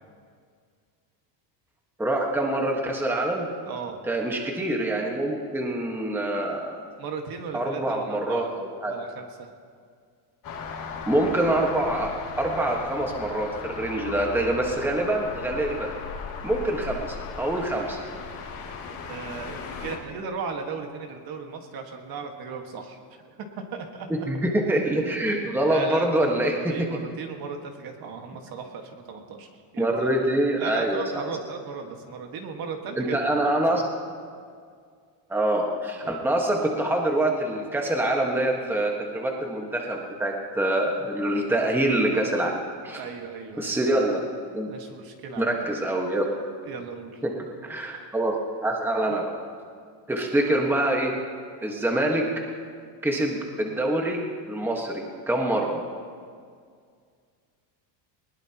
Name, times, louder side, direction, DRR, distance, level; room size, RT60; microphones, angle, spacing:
voice 1, 2.0-3.5 4.0-6.8 7.5-8.9 11.0-15.9 16.4-18.0 24.1-26.9 29.8-31.0 33.0-33.8 35.3-43.0 43.6-44.2 44.5-44.7 45.4-46.3 47.2-47.3 47.6-49.3 50.1-51.1 51.6-52.2 53.0-54.2 54.5-55.8, right 1 dB, 5° right, 0 dB, 1.5 m, -25 dB
voice 2, 3.7-4.0 7.0-8.5 8.9-9.5 18.9-23.0 23.4-24.3 25.6-29.5 29.7-30.1 30.6-33.4 33.7-33.8 36.0-36.2 43.0-43.8 44.7-45.6 46.6-47.2, right 5 dB, 45° right, 3 dB, 1.8 m, -36 dB
sound 1, 10.4-20.0, left 5 dB, 45° left, 2.6 m, -37 dB
20.5 x 20.0 x 3.0 m, 2.1 s
cardioid pair, 145°, 49 cm